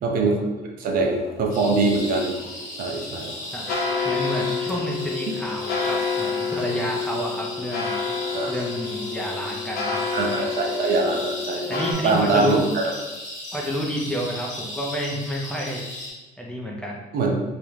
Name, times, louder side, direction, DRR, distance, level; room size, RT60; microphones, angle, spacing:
voice 1, 0.0-2.3 2.8-3.3 8.3-8.5 10.1-12.9 17.1-17.3, right 3 dB, 60° right, 1 dB, 0.5 m, -23 dB
sound 1, 1.1-11.9, left 5 dB, 65° left, 0.6 m, -29 dB
sound 2, 1.5-16.1, left 1 dB, 50° left, 1.0 m, -36 dB
voice 2, 4.0-8.0 8.5-10.0 11.7-12.6 13.5-15.8 16.4-17.0, equal, 5° left, -3 dB, 0.4 m, -29 dB
2.4 x 2.0 x 3.0 m, 1.2 s
cardioid pair, 110°, 17 cm